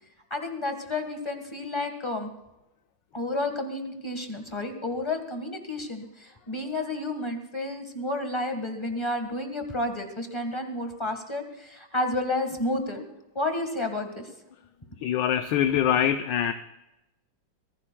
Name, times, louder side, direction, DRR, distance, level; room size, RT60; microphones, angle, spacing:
voice 1, 0.3-2.3 3.1-13.0 13.3-14.3, left 2 dB, 15° left, 5 dB, 1.5 m, -31 dB
voice 2, 15.0-16.5, left 9 dB, 75° left, 8 dB, 1.3 m, -24 dB
23.0 x 15.5 x 2.3 m, 0.93 s
omnidirectional pair, 2.1 m